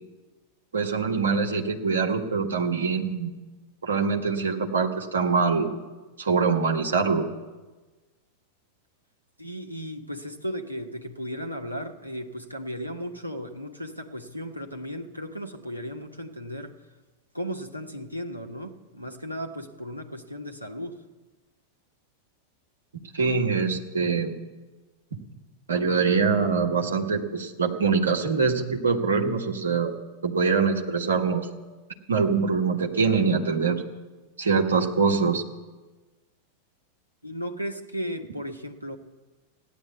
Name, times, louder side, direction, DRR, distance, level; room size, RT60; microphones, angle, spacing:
voice 1, 0.7-3.3 3.8-5.7 6.2-7.3 23.1-24.3 25.7-29.9 30.2-31.5 32.1-33.8 34.4-35.4, right 5 dB, 70° right, 2 dB, 1.7 m, -24 dB
voice 2, 9.4-16.8 17.3-21.0 37.2-39.0, equal, 90° right, 2 dB, 1.2 m, -35 dB
16.0 x 10.5 x 8.0 m, 1.2 s
figure-of-eight pair, 90°, 0 cm